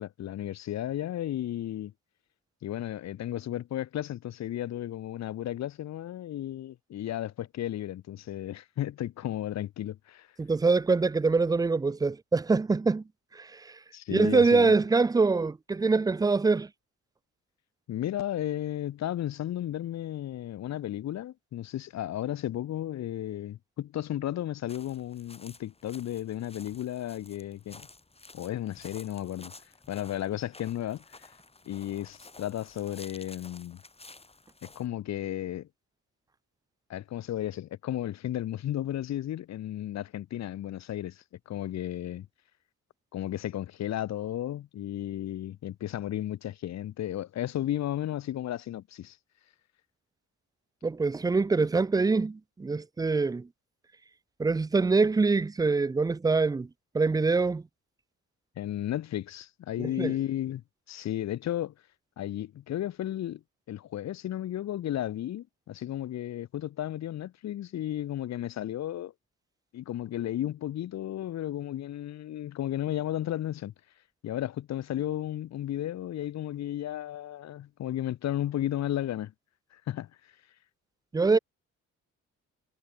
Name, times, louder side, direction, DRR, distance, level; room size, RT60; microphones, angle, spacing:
voice 1, 0.0-1.9 2.6-10.3 13.9-14.8 17.9-27.9 28.3-29.5 29.9-31.3 31.7-33.8 34.6-35.7 36.9-42.3 43.1-49.2 58.6-60.6 60.9-61.7 62.2-63.4 63.7-69.1 69.7-73.7 74.2-79.3 79.7-80.1, left 12 dB, 65° left, 1.0 m, -34 dB
voice 2, 10.4-13.0 13.3-13.7 14.1-16.7 50.8-53.5 54.4-56.7 56.9-57.6 59.8-60.1 81.1-81.4, right 4 dB, 15° right, 0.4 m, -24 dB
sound 1, 24.7-34.9, left 3 dB, 20° left, 6.5 m, -52 dB
cardioid pair, 90°, 30 cm